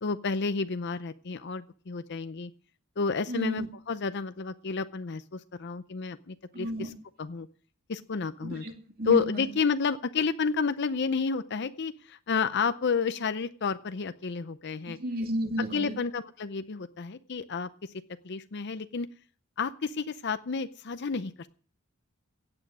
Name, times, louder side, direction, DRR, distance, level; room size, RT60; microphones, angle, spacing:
voice 1, 0.0-2.5 3.0-6.9 7.2-7.5 7.9-8.6 9.0-15.0 15.7-17.9 18.2-19.1 19.6-21.5, left 5 dB, 50° left, 11 dB, 0.6 m, -30 dB
voice 2, 3.3-3.7 6.5-6.9 8.4-8.7 9.0-9.5 14.9-15.9, equal, 40° right, 3 dB, 2.6 m, -32 dB
16.0 x 9.0 x 6.1 m, 0.43 s
head